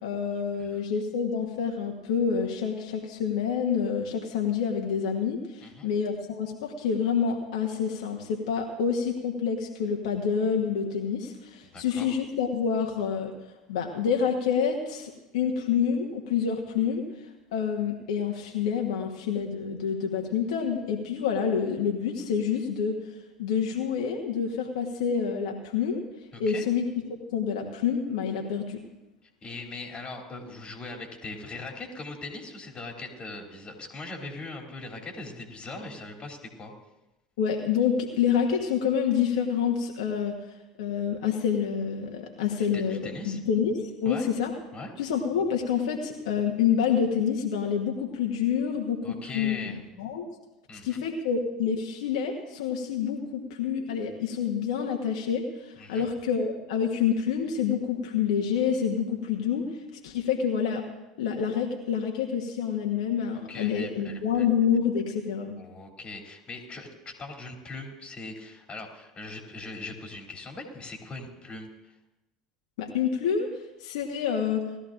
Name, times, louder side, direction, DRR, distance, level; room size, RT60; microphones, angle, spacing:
voice 1, 0.0-13.3 13.7-17.0 17.5-22.9 23.4-26.0 26.4-28.8 37.4-40.3 40.8-44.5 45.0-50.3 50.8-60.8 61.2-65.5 72.8-73.5 73.8-74.6, left 7 dB, 70° left, 1 dB, 1.3 m, -27 dB
voice 2, 11.7-12.1 26.3-26.7 29.4-36.7 42.7-43.4 44.0-44.3 44.7-44.9 49.0-49.8 50.7-51.0 55.8-56.1 63.3-64.5 65.6-71.9, left 3 dB, 25° left, 1 dB, 2.9 m, -40 dB
19.0 x 13.0 x 2.5 m, 0.99 s
hypercardioid pair, 75°, 4 cm